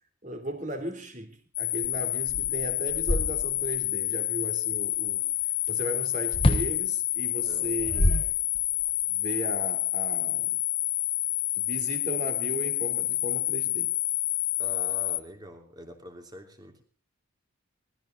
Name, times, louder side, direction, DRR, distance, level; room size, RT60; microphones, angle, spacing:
voice 1, 0.2-5.2 5.7-8.2 9.1-10.6 11.6-13.9, right 1 dB, 35° right, 6 dB, 3.3 m, -36 dB
sound 1, 1.5-15.2, left 15 dB, 45° left, 0.8 m, -28 dB
sound 2, 1.8-1.9 2.3-3.8 6.3-6.8 7.6-8.8, left 1 dB, 25° left, 1.3 m, -26 dB
voice 2, 7.4-7.8 14.6-16.8, equal, 20° right, 5 dB, 3.0 m, -45 dB
20.0 x 15.0 x 4.0 m, 0.39 s
head